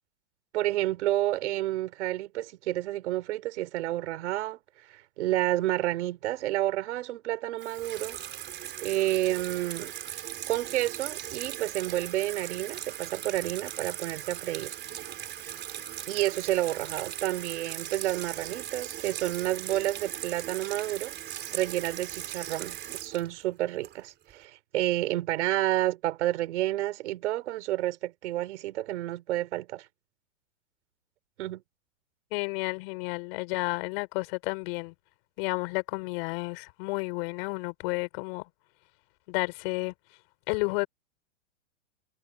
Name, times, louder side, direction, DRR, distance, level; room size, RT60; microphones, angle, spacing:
voice 1, 0.5-4.6 4.9-8.2 8.8-9.9 10.5-14.7 16.1-21.1 21.5-29.9 31.4-31.6, right 15 dB, 65° right, 3.8 m, -30 dB
Water tap faucet / Sink (filling or washing), 7.6-24.3, right 11 dB, 25° right, 4.2 m, -39 dB
voice 2, 32.3-34.9 35.4-38.5 39.3-39.9 40.5-40.9, left 28 dB, 50° left, 5.7 m, -31 dB
hypercardioid pair, 125°, 38 cm